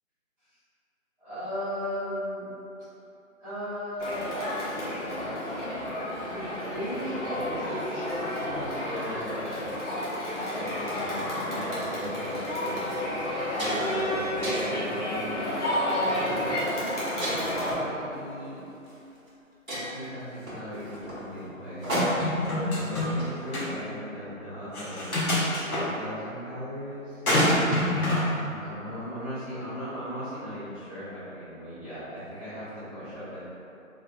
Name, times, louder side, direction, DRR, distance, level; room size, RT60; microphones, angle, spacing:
voice 1, 1.2-2.5 3.4-5.0 6.3-9.4 10.5-12.8 13.5-15.5 17.2-18.6 19.7-21.8 22.9-27.2 28.4-33.4, equal, 15° right, -21 dB, 1.4 m, -37 dB
Crowd, 4.0-17.7, left 1 dB, 55° left, 1.3 m, -31 dB
sound 1, 12.2-12.3 12.9-13.0 13.3-14.0 14.4-14.9 15.5-15.8 17.2-17.7 18.9-19.0 19.3-19.4 19.7-22.5, equal, 70° right, 1.5 m, -32 dB
sound 2, 22.2-23.2 23.5-23.7 24.7-25.8 27.3-28.3, left 1 dB, 85° left, 1.3 m, -25 dB
4.1 x 3.8 x 2.3 m, 2.8 s
figure-of-eight pair, 165°, 42 cm